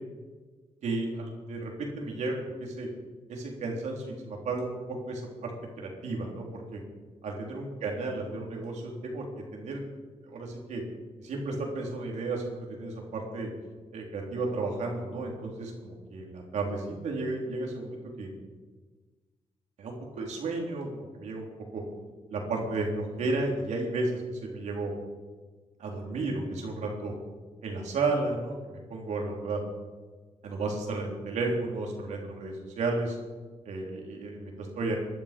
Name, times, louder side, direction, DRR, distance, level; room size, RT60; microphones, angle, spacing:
voice 1, 0.8-2.9 3.3-5.5 5.8-6.8 7.2-9.2 9.5-9.8 10.2-10.8 11.2-13.5 13.9-18.3 19.8-21.5 21.7-21.8 22.3-24.9 25.8-27.1 27.6-29.6 30.4-33.2 33.7-35.0, right 3 dB, 90° right, 0 dB, 3.7 m, -33 dB
19.5 x 12.0 x 5.3 m, 1.4 s
cardioid pair, 100°, 12 cm